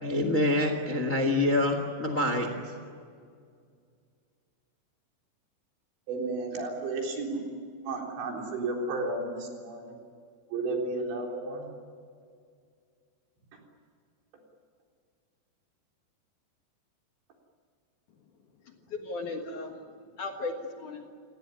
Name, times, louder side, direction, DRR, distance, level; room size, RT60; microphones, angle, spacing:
voice 1, 0.0-2.5, left 2 dB, 35° left, 6 dB, 1.4 m, -26 dB
voice 2, 6.1-7.4 7.8-9.9 10.5-11.7, right 3 dB, 75° right, 0 dB, 6.1 m, -33 dB
voice 3, 18.6-19.8 20.2-21.0, left 3 dB, 55° left, 3 dB, 2.5 m, -36 dB
29.5 x 17.5 x 9.8 m, 2.2 s
omnidirectional pair, 5.2 m